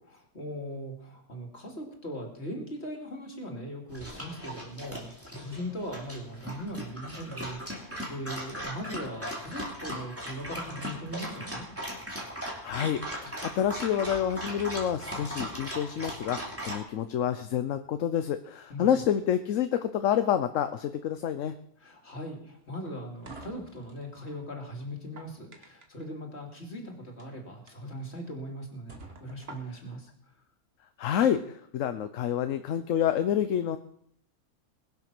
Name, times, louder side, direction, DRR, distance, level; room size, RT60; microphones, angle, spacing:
voice 1, 0.3-11.7 18.7-18.9 21.8-30.1, equal, 50° left, 2 dB, 2.9 m, -39 dB
Dog, 3.9-16.8, equal, 10° right, 2.9 m, -38 dB
voice 2, 12.4-21.5 31.0-33.8, left 9 dB, 65° left, 10 dB, 1.0 m, -28 dB
sound 1, 22.7-24.4 24.9-26.0 27.0-27.2 27.7-27.8 28.3-28.4 28.9-30.0, right 3 dB, 45° right, 1.8 m, -48 dB
21.0 x 7.2 x 6.1 m, 0.68 s
omnidirectional pair, 1.5 m